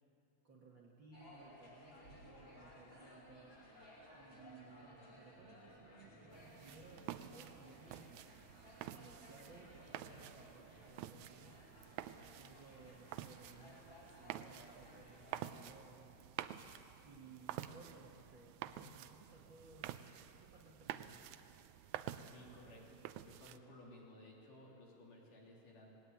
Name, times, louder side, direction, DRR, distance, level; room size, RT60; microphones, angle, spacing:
voice 1, 0.4-3.7 4.1-8.4 8.9-16.2 17.0-19.9 20.2-21.3, right 3 dB, 45° right, -1 dB, 1.7 m, -60 dB
sound 1, 1.1-15.5, equal, 30° left, 5.3 m, -59 dB
sound 2, 6.3-23.6, right 12 dB, 90° right, 1.7 m, -50 dB
voice 2, 22.3-25.9, left 1 dB, 65° left, -3 dB, 4.8 m, -58 dB
19.5 x 17.5 x 9.3 m, 2.9 s
omnidirectional pair, 4.1 m